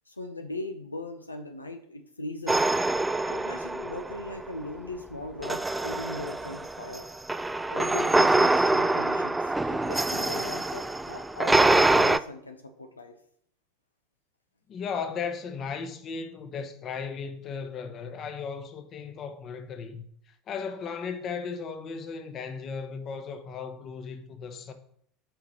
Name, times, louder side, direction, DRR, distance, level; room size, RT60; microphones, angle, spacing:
voice 1, 0.1-2.7 3.2-7.1 7.7-13.2, left 2 dB, 85° left, 0.6 m, -39 dB
sound 1, 2.5-4.5 5.4-12.2, right 2 dB, 10° right, 0.3 m, -25 dB
voice 2, 14.7-24.7, left 5 dB, 35° left, 1.0 m, -36 dB
5.9 x 5.1 x 6.3 m
figure-of-eight pair, 75°, 0 cm